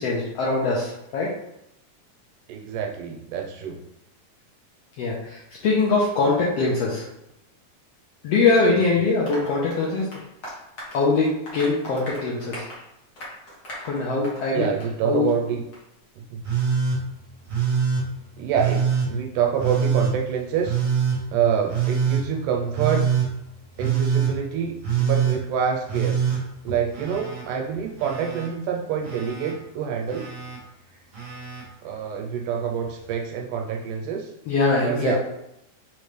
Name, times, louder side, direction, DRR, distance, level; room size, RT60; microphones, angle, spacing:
voice 1, 0.0-1.3 5.0-7.1 8.2-10.1 10.9-12.6 13.7-14.7 15.0-15.3 34.5-35.2, left 3 dB, 85° left, -5 dB, 1.4 m, -22 dB
voice 2, 2.5-3.8 14.5-15.6 16.2-16.4 18.4-20.8 21.3-23.1 23.8-26.2 26.6-30.3 31.8-34.3 34.8-35.2, right 7 dB, 90° right, 2 dB, 2.2 m, -26 dB
Applause, 9.3-14.5 14.8-14.9 15.3-15.4 15.7-15.8, equal, 50° left, 1.4 m, -39 dB
Telephone, 16.4-17.0 17.5-18.0 18.5-19.1 19.6-20.1 20.6-21.2 21.7-22.2 22.7-23.3 23.8-24.3 24.8-25.4 25.9-27.4 27.7-28.5 29.0-29.5 30.1-30.6 31.1-31.6 32.8-32.9, right 7 dB, 55° right, 0.8 m, -24 dB
5.2 x 3.1 x 3.2 m, 0.84 s
omnidirectional pair, 3.7 m